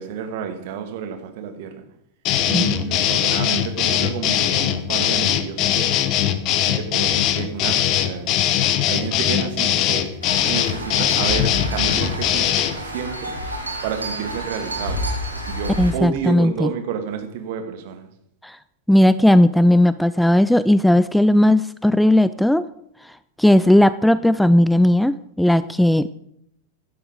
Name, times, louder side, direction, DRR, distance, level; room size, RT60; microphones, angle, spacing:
voice 1, 0.0-1.8 2.5-6.0 6.6-8.4 8.9-13.4 13.8-15.1 15.5-18.1, right 7 dB, 50° right, 2.0 m, -30 dB
sound 1, 2.2-12.8, left 11 dB, 40° left, 1.1 m, -21 dB
sound 2, 10.2-15.9, equal, 85° right, 2.9 m, -29 dB
voice 2, 15.8-16.7 18.4-18.6 18.9-22.6 23.4-26.1, left 1 dB, ahead, 0.4 m, -16 dB
16.0 x 11.5 x 3.7 m
figure-of-eight pair, 90°, 0 cm